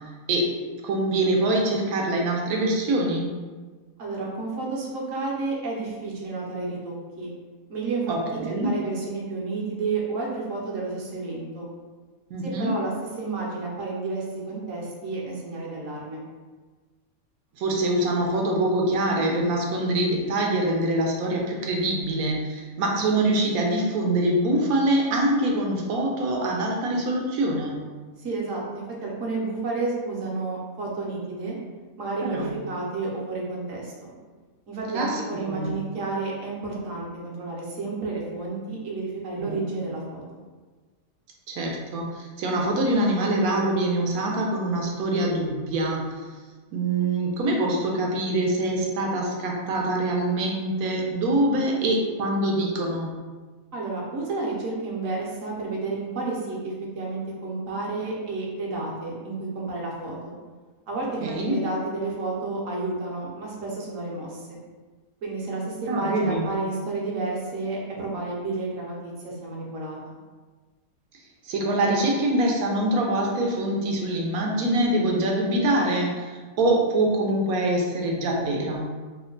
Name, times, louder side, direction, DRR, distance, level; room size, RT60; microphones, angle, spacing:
voice 1, 0.8-3.3 8.1-8.7 12.3-12.7 17.6-27.8 32.2-32.5 34.9-35.2 35.5-35.7 39.4-39.6 41.5-46.0 46.7-53.1 61.2-61.6 65.9-66.5 71.4-78.9, right 1 dB, 80° right, -1 dB, 1.1 m, -24 dB
voice 2, 4.0-7.3 7.7-8.1 8.5-11.7 12.4-16.2 28.2-31.6 32.0-34.1 34.7-40.4 53.7-60.4 60.9-64.6 65.2-70.2, right 3 dB, 65° right, -3 dB, 1.1 m, -31 dB
3.0 x 2.1 x 3.7 m, 1.4 s
omnidirectional pair, 1.5 m